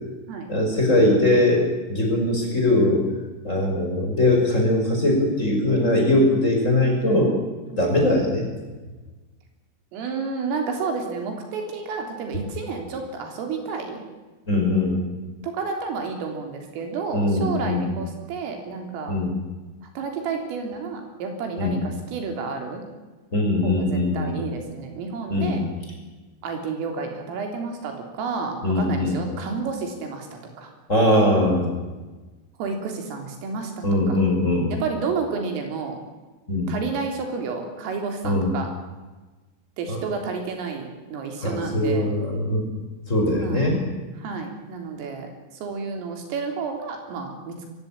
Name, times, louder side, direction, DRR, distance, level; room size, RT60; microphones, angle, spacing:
voice 1, 0.5-3.1 3.4-7.3 7.8-8.5 14.5-15.0 17.1-17.9 19.1-19.3 21.6-21.8 23.3-24.4 25.3-25.7 28.6-29.2 30.9-31.8 33.8-34.7 36.5-36.7 38.2-38.5 39.9-40.0 41.4-42.7 43.1-43.8, left 1 dB, 15° left, 1 dB, 5.5 m, -21 dB
voice 2, 5.8-6.2 7.9-8.1 9.9-14.0 15.4-19.2 20.0-22.8 23.6-25.6 26.4-30.7 32.6-34.2 34.8-36.0 36.7-38.7 39.8-42.1 43.4-43.7 44.2-47.7, right 4 dB, 80° right, 3 dB, 6.0 m, -31 dB
22.5 x 16.5 x 8.8 m, 1.2 s
omnidirectional pair, 5.8 m